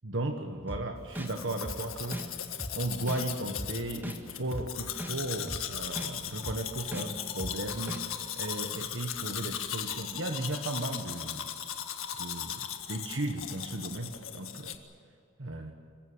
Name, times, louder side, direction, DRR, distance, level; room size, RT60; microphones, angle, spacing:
voice 1, 0.0-11.5 12.2-12.6 12.9-14.8 15.4-15.7, right 2 dB, 65° right, 4 dB, 1.5 m, -35 dB
sound 1, 0.7-0.8 1.2-1.3 1.6-1.8 2.1-2.2 2.6-2.7 3.1-3.2 3.6-3.7 4.0-4.2 4.5-4.6 5.0-5.1 5.5-5.6 5.9-6.1 6.4-6.6 6.9-7.0 7.4-7.5 7.9-8.0, equal, 10° right, 1.7 m, -37 dB
Domestic sounds home sounds, 1.1-14.8, left 10 dB, 80° left, 1.7 m, -38 dB
26.5 x 15.5 x 9.3 m, 2.4 s
head